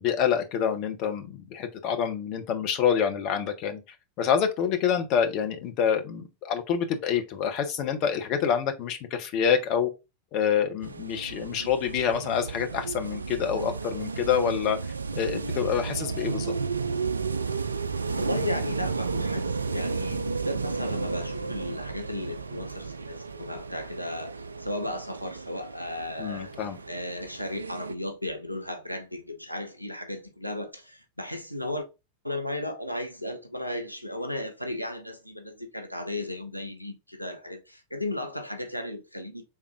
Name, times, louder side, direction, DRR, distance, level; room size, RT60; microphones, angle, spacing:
voice 1, 0.0-3.8 4.2-9.9 10.3-14.8 15.1-16.5 26.2-26.8, left 8 dB, 40° left, 0.8 m, -27 dB
sound 1, 10.8-27.9, right 4 dB, 75° right, 0.3 m, -33 dB
voice 2, 18.2-26.5 26.9-31.9 32.2-39.4, left 1 dB, 90° left, 0.6 m, -35 dB
5.5 x 3.5 x 2.4 m
figure-of-eight pair, 90°, 0 cm